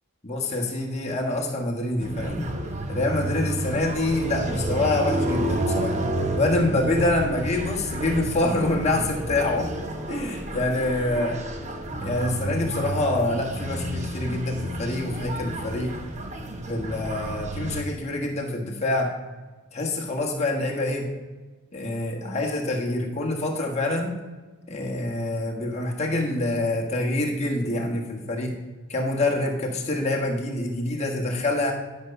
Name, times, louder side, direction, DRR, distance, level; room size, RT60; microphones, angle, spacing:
voice 1, 0.2-2.5 2.9-6.0 6.4-9.7 10.1-11.4 11.8-15.9 16.7-19.1 19.7-21.1 21.7-24.1 24.7-28.5 28.9-31.7, left 2 dB, 30° left, 0 dB, 1.3 m, -26 dB
sound 1, 2.0-17.8, right 1 dB, 30° right, 0.8 m, -30 dB
10.5 x 5.3 x 5.6 m, 1.3 s
head